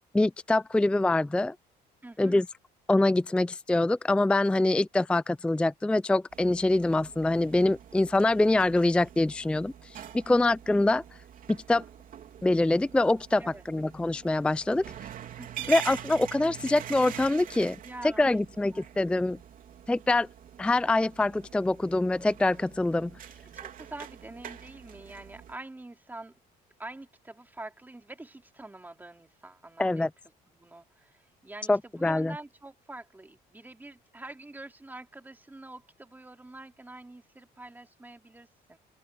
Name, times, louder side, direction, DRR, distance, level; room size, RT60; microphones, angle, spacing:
voice 1, 0.1-1.5 2.2-2.5 2.9-11.0 11.5-11.8 12.4-14.8 15.7-17.8 18.2-19.4 19.9-20.3 20.6-23.1 29.8-30.1 31.7-32.3, left 2 dB, 5° left, 0.4 m, -25 dB
voice 2, 2.0-2.3 10.2-10.6 13.4-13.6 15.4-15.7 17.8-19.0 23.5-26.3 26.8-30.1 30.5-38.8, right 2 dB, 10° right, 2.9 m, -46 dB
sound 1, 6.3-25.5, right 10 dB, 55° right, 3.5 m, -44 dB
open air
cardioid pair, 110°, 17 cm